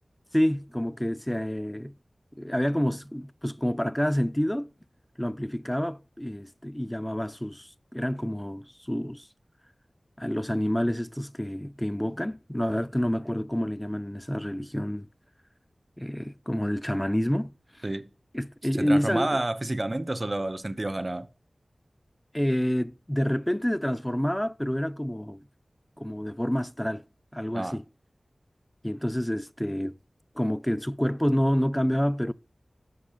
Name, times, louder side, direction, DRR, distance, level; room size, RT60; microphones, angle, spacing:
voice 1, 0.3-1.9 2.4-4.7 5.2-9.3 10.2-15.1 16.0-17.5 18.3-19.4 22.3-25.4 26.0-27.0 27.3-27.8 28.8-29.9 30.4-32.3, equal, 10° left, 0.4 m, -28 dB
voice 2, 18.7-21.3 27.5-27.8, right 1 dB, 35° right, 1.0 m, -29 dB
11.5 x 6.5 x 6.7 m
wide cardioid pair, 45°, 0 cm